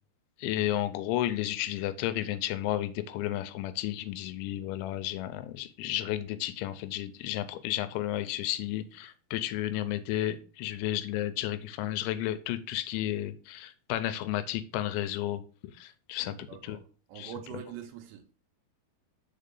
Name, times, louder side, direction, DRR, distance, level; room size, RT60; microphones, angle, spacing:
voice 1, 0.4-15.4 15.8-16.8 17.2-17.3, left 13 dB, 85° left, 2.9 m, -32 dB
voice 2, 16.2-16.8 17.1-18.3, right 10 dB, 75° right, 2.9 m, -44 dB
6.5 x 4.4 x 5.2 m
omnidirectional pair, 5.3 m